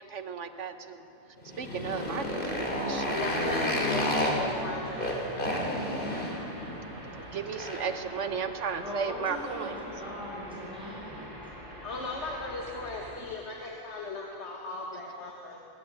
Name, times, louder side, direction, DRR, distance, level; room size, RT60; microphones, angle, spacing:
voice 1, 0.1-1.0 1.6-3.0 7.3-9.7, right 6 dB, 70° right, 9 dB, 1.2 m, -34 dB
Motorcycle, 1.4-8.0, left 1 dB, 45° left, 3.1 m, -31 dB
sound 1, 1.8-13.2, equal, 90° right, 6.5 m, -45 dB
voice 2, 2.9-5.4 10.1-10.2 11.8-15.6, left 3 dB, 65° left, 0 dB, 2.0 m, -37 dB
voice 3, 8.8-11.3, equal, 5° right, -5 dB, 7.0 m, -39 dB
20.5 x 15.0 x 9.8 m, 2.8 s
omnidirectional pair, 1.3 m